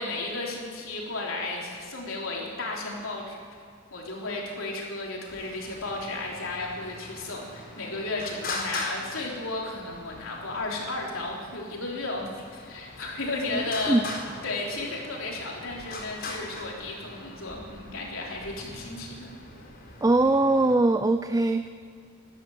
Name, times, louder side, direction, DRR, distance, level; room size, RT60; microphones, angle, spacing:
voice 1, 0.0-3.4 3.9-14.1 14.4-19.3, left 2 dB, 85° left, -2 dB, 3.5 m, -34 dB
Traffic noise roadway noise, 5.3-20.8, left 2 dB, 50° left, 4.3 m, -41 dB
voice 2, 13.5-14.0 20.0-21.7, right 2 dB, 15° right, 9 dB, 0.4 m, -22 dB
13.5 x 12.5 x 7.9 m, 2.2 s
head